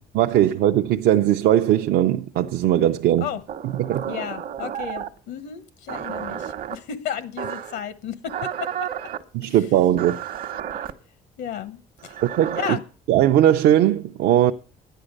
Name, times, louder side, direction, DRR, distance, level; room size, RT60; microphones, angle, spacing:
voice 1, 0.1-3.3 3.8-4.1 9.3-10.2 12.2-12.6 13.1-14.5, right 12 dB, 75° right, 0.5 m, -19 dB
sound 1, 3.5-5.2 5.9-6.8 7.4-7.8 8.3-9.2 10.0-10.9 12.0-12.7, right 9 dB, 55° right, 0.9 m, -32 dB
voice 2, 4.1-8.9 9.4-9.7 11.4-12.2 12.5-12.8, left 9 dB, 80° left, 0.9 m, -33 dB
12.0 x 10.0 x 6.5 m
cardioid pair, 110°, 17 cm